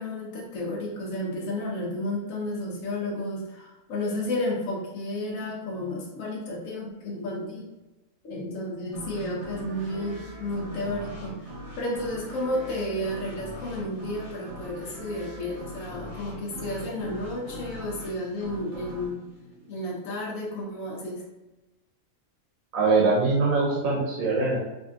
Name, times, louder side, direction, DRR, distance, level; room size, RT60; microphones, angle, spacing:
voice 1, 0.0-7.7 8.2-10.1 10.4-11.4 11.8-19.2 19.7-21.2, left 1 dB, 70° left, -3 dB, 1.3 m, -32 dB
sound 1, 8.9-20.4, equal, 35° right, 0.6 m, -41 dB
voice 2, 22.7-24.6, right 3 dB, 80° right, -3 dB, 1.1 m, -22 dB
4.9 x 2.5 x 2.5 m, 1.0 s
omnidirectional pair, 1.4 m